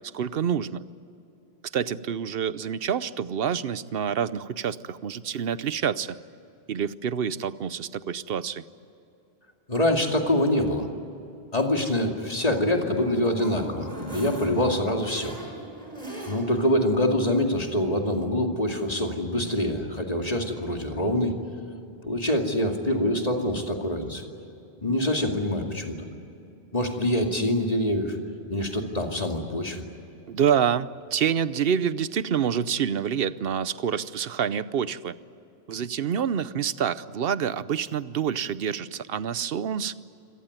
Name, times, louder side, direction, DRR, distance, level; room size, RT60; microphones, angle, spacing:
voice 1, 0.1-0.9 1.7-6.2 6.7-8.6 30.3-35.2 35.7-39.9, right 8 dB, 65° right, 16 dB, 0.9 m, -27 dB
voice 2, 9.7-10.9 11.5-15.4 16.3-21.4 22.0-24.2 24.8-26.0 26.7-28.2 28.5-29.8, left 1 dB, 35° left, 3 dB, 2.5 m, -25 dB
sound 1, 12.9-16.7 17.1-17.2 17.5-17.6, right 1 dB, 35° right, 5.0 m, -38 dB
26.5 x 18.0 x 9.5 m, 2.8 s
omnidirectional pair, 1.1 m